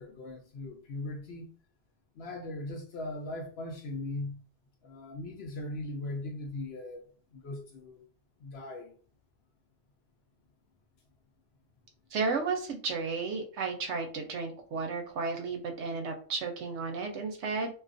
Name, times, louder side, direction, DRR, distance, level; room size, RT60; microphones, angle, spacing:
voice 1, 0.0-1.5 2.2-4.4 4.8-8.0 8.4-8.9, left 2 dB, 65° left, 0.7 m, -39 dB
voice 2, 12.1-17.7, right 4 dB, 70° right, 0.8 m, -33 dB
2.4 x 2.3 x 2.5 m
omnidirectional pair, 1.3 m